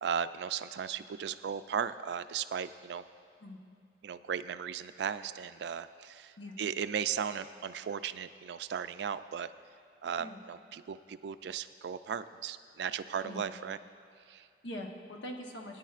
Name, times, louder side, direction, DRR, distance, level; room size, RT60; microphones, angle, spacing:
voice 1, 0.0-3.0 4.0-6.3 6.6-9.5 10.0-13.8 14.3-14.5, right 7 dB, 65° right, 13 dB, 0.3 m, -36 dB
voice 2, 14.6-15.8, left 1 dB, 90° left, 2 dB, 1.1 m, -43 dB
18.5 x 9.9 x 2.5 m, 2.4 s
head